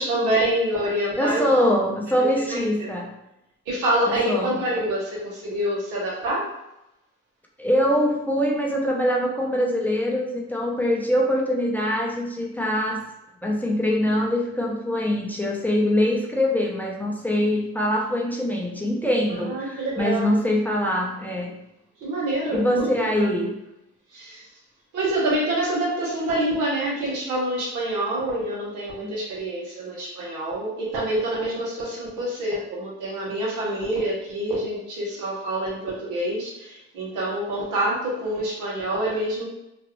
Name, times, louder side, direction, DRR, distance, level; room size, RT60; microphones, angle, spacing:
voice 1, 0.0-1.4 2.3-2.9 3.7-6.4 19.3-20.4 22.0-23.3 24.1-24.4 24.9-39.4, right 1 dB, 90° right, -5 dB, 1.3 m, -26 dB
voice 2, 1.2-3.1 4.2-4.5 7.6-13.0 13.4-21.5 22.5-23.6 29.0-29.1, equal, 5° left, -2 dB, 0.6 m, -23 dB
3.0 x 2.5 x 3.0 m, 0.87 s
cardioid pair, 90°, 30 cm